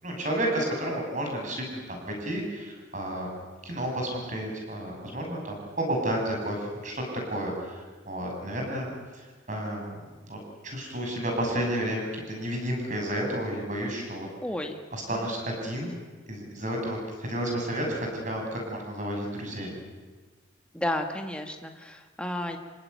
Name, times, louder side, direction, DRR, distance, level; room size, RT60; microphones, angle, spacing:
voice 1, 0.0-3.3 3.6-7.0 7.3-8.9 9.1-10.0 10.3-14.3 14.9-15.9 16.3-19.8, right 1 dB, 40° right, 1 dB, 7.1 m, -31 dB
voice 2, 14.4-14.8 15.1-15.2 20.7-22.6, left 1 dB, 5° left, 3 dB, 1.8 m, -32 dB
27.5 x 18.0 x 9.5 m, 1.4 s
head